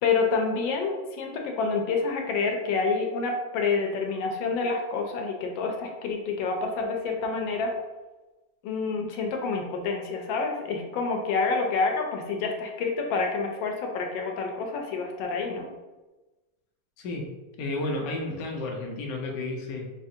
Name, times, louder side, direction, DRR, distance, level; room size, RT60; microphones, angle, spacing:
voice 1, 0.0-7.7 8.6-15.6, left 4 dB, 90° left, 2 dB, 1.4 m, -28 dB
voice 2, 17.0-17.3 17.6-19.9, left 2 dB, 65° left, 0 dB, 0.9 m, -32 dB
4.9 x 2.4 x 2.7 m, 1.2 s
omnidirectional pair, 2.0 m